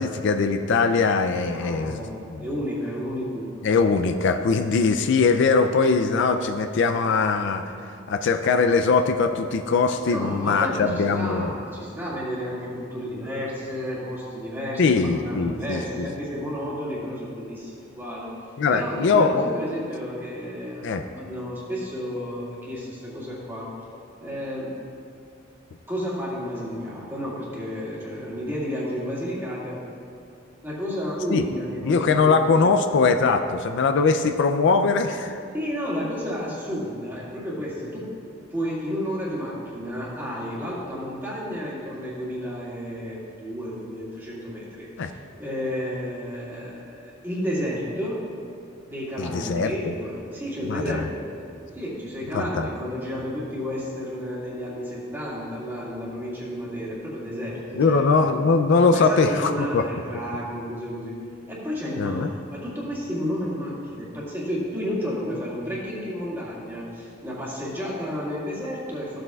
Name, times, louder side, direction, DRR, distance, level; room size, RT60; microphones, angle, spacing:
voice 1, 0.0-2.0 2.3-2.4 3.6-11.5 14.8-16.1 18.6-19.5 20.8-21.0 31.3-31.4 31.8-35.4 45.0-45.1 49.2-49.9 50.7-51.1 52.3-52.7 57.8-59.8 62.0-62.3, left 4 dB, 60° left, 7 dB, 0.4 m, -21 dB
voice 2, 1.5-3.6 10.1-18.3 18.7-23.7 24.2-24.8 25.9-29.8 30.6-32.7 35.5-48.2 48.9-51.2 51.7-58.2 58.9-61.1 61.5-69.2, equal, 10° right, -7 dB, 2.0 m, -31 dB
14.5 x 7.6 x 2.4 m, 2.4 s
head